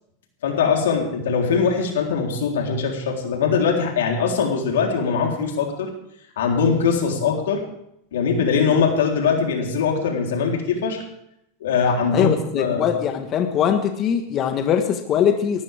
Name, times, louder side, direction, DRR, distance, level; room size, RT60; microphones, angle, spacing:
voice 1, 0.4-5.9 6.4-7.6 8.1-11.0 11.6-12.9, left 5 dB, 90° left, 1 dB, 3.6 m, -21 dB
voice 2, 12.1-15.6, left 8 dB, 35° left, 5 dB, 1.5 m, -21 dB
20.0 x 13.5 x 3.6 m, 0.77 s
supercardioid pair, 130°, 0 cm